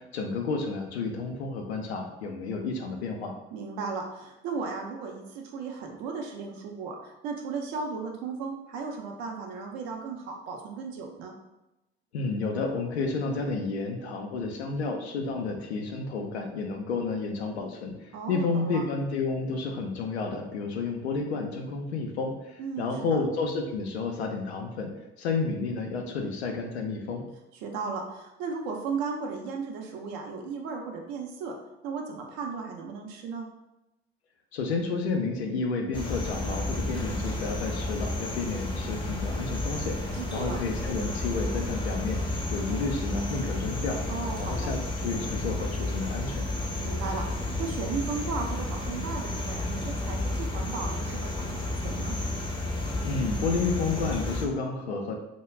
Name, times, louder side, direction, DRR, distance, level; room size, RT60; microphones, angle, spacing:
voice 1, 0.0-3.3 12.1-24.9 25.2-27.2 34.5-40.0 40.3-42.2 42.5-44.0 44.4-46.5 53.0-55.1, left 4 dB, 80° left, 3 dB, 0.5 m, -31 dB
voice 2, 3.5-11.4 18.1-18.8 22.6-22.9 27.6-31.6 31.8-33.5 40.1-40.6 44.1-44.7 46.8-51.6 51.8-52.1, right 5 dB, 55° right, 2 dB, 0.6 m, -35 dB
sound 1, 35.9-54.5, left 2 dB, 15° left, 0.6 m, -32 dB
2.3 x 2.1 x 3.1 m, 0.95 s
figure-of-eight pair, 55°, 32 cm